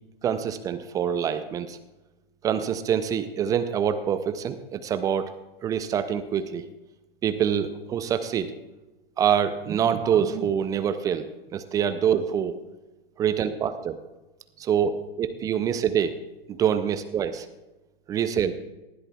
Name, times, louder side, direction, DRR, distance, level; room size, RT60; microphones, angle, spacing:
voice 1, 0.2-1.8 2.4-5.3 5.6-6.7 7.2-8.5 9.2-12.6 13.2-14.0 14.6-16.2 16.5-17.5 18.1-18.5, right 8 dB, 10° right, 11 dB, 0.4 m, -25 dB
18.5 x 13.0 x 2.3 m, 1.1 s
figure-of-eight pair, 110°, 30 cm